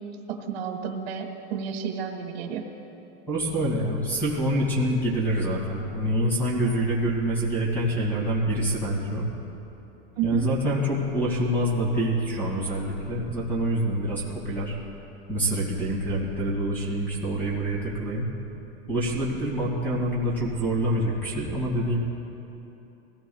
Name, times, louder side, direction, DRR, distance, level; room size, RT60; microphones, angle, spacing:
voice 1, 0.3-2.6 10.2-10.5, right 8 dB, 75° right, 3 dB, 1.6 m, -31 dB
voice 2, 3.3-9.3 10.2-14.8 15.3-18.3 18.9-22.0, right 1 dB, 5° left, -4 dB, 2.3 m, -26 dB
22.0 x 17.5 x 2.4 m, 3.0 s
supercardioid pair, 180°, 30 cm